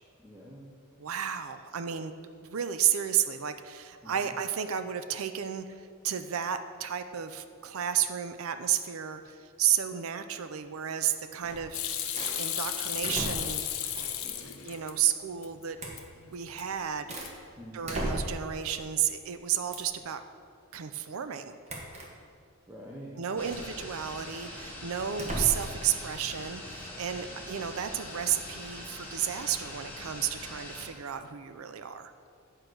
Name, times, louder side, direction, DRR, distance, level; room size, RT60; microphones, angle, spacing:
voice 1, 0.2-0.7 4.0-4.1 14.2-14.6 17.6-17.9 22.7-23.7 27.3-27.4, equal, 10° right, -5 dB, 0.7 m, -46 dB
voice 2, 1.0-2.1 2.4-13.6 14.6-15.8 16.2-17.2 17.7-20.2 20.7-21.6 23.2-32.1, right 9 dB, 70° right, 10 dB, 0.5 m, -32 dB
sound 1, 11.4-11.7 12.1-12.4 13.0-13.6 13.9-14.3 15.8-16.0 16.6-17.4 17.8-18.5 19.7-20.0 21.7-22.1 23.4-23.7 25.1-25.8, right 1 dB, 30° right, 1.1 m, -36 dB
Hands / Sink (filling or washing), 11.7-14.9 15.3-16.1 16.4-16.8 17.1-17.6, left 10 dB, 75° left, 0.7 m, -34 dB
sound 2, 23.4-30.9, left 1 dB, 10° left, 1.3 m, -43 dB
8.7 x 4.6 x 6.3 m, 2.2 s
head